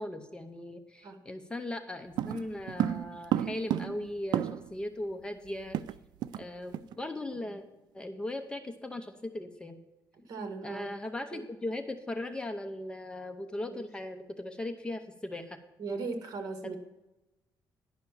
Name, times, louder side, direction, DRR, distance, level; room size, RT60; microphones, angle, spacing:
voice 1, 0.0-5.8 6.4-7.6 7.9-9.8 10.6-15.6 16.6-16.8, left 1 dB, 10° left, 7 dB, 0.6 m, -38 dB
sound 1, 2.2-4.8 5.1-5.2 5.4-6.5 6.7-6.9 7.3-7.5, right 11 dB, 75° right, 0.3 m, -32 dB
voice 2, 10.2-10.9 11.3-11.4 15.8-16.8, right 4 dB, 55° right, 6 dB, 1.6 m, -37 dB
10.5 x 5.7 x 7.1 m, 0.99 s
cardioid pair, 160°, 8 cm